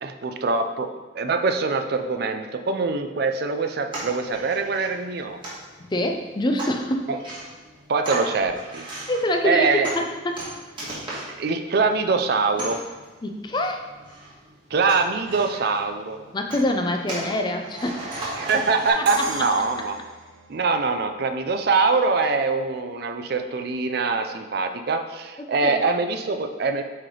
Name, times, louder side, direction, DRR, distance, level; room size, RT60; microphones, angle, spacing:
voice 1, 0.0-5.4 7.1-7.2 7.9-8.8 9.4-9.9 11.4-12.8 14.7-16.2 18.4-20.0 20.5-26.8, right 4 dB, 55° right, 7 dB, 0.4 m, -23 dB
sound 1, 3.9-18.9, right 2 dB, 25° right, 1.7 m, -37 dB
voice 2, 5.9-7.1 9.1-10.5 13.2-13.8 16.3-18.1 18.5-18.6 19.0-19.2 25.4-25.9, left 1 dB, 25° left, 4 dB, 0.5 m, -25 dB
Crash cymbal, 19.1-21.0, right 3 dB, 90° right, 0.7 m, -33 dB
8.5 x 3.3 x 3.8 m, 1.3 s
head